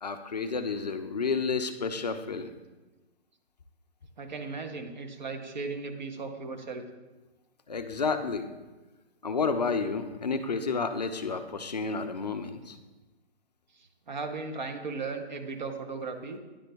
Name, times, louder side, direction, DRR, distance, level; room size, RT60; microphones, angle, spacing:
voice 1, 0.0-2.5 7.7-8.5 9.2-12.8, left 4 dB, 40° left, 8 dB, 0.4 m, -30 dB
voice 2, 4.2-6.9 13.8-16.4, right 4 dB, 45° right, 6 dB, 0.7 m, -36 dB
9.8 x 3.7 x 3.4 m, 1.2 s
hypercardioid pair, 165°, 32 cm